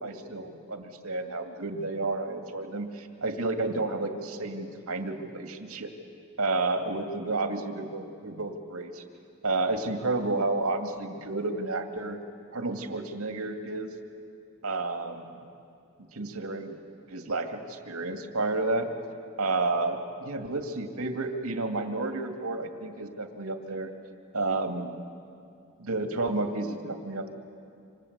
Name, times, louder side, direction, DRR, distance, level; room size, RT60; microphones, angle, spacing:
voice 1, 0.0-5.9 6.4-9.0 9.4-12.2 12.5-13.9 14.6-15.3 16.1-16.8 17.1-18.9 19.4-23.9 24.3-25.0 25.8-27.3, right 2 dB, 85° right, 6 dB, 2.3 m, -31 dB
28.0 x 26.5 x 8.1 m, 2.5 s
head